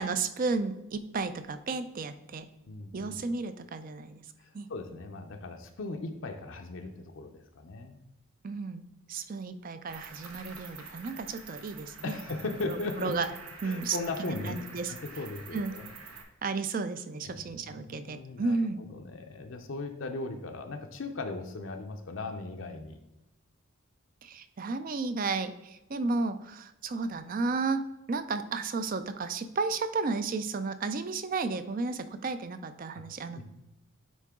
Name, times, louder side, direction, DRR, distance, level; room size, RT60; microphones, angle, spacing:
voice 1, 0.0-2.5 2.9-4.3 4.5-4.7 8.4-12.1 12.7-13.3 13.6-14.9 15.5-15.7 16.4-18.8 24.2-33.4, right 4 dB, 40° right, 11 dB, 0.4 m, -33 dB
voice 2, 2.7-3.2 4.4-8.0 12.0-13.1 13.6-14.6 14.9-15.8 17.2-18.6 18.9-23.0 33.4-33.5, left 3 dB, 60° left, 4 dB, 0.6 m, -38 dB
Cricket, 9.9-16.2, right 4 dB, 85° right, 1.1 m, -47 dB
9.3 x 3.7 x 3.6 m, 0.97 s
head